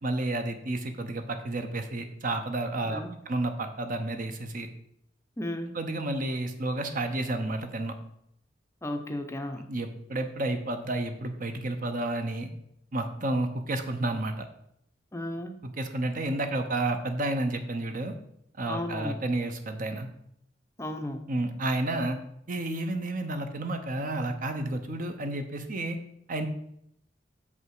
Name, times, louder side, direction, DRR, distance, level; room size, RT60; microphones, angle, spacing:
voice 1, 0.0-3.0 3.3-4.7 5.7-7.9 9.7-12.5 12.9-14.4 15.6-18.1 18.6-20.1 21.3-22.2 22.5-26.0 26.3-26.5, right 2 dB, 50° right, 6 dB, 0.8 m, -31 dB
voice 2, 5.4-5.8 8.8-9.7 15.1-15.6 18.6-19.2 20.8-21.2, left 1 dB, 15° left, 6 dB, 0.6 m, -34 dB
6.7 x 5.4 x 4.8 m, 0.73 s
head